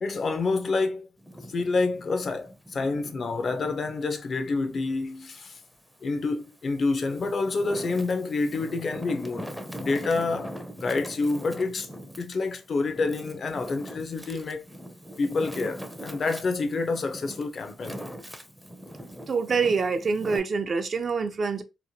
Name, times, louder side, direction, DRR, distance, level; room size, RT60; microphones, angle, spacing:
voice 1, 0.0-1.1 1.5-5.6 6.0-9.5 9.8-11.9 12.2-14.7 15.2-18.0, left 3 dB, 50° left, 0.5 m, -28 dB
Wind, 1.2-4.0 4.5-5.8 6.4-20.4, equal, ahead, 0.5 m, -42 dB
voice 2, 19.3-21.6, right 5 dB, 50° right, 0.5 m, -26 dB
2.9 x 2.1 x 2.7 m
cardioid pair, 75°, 0 cm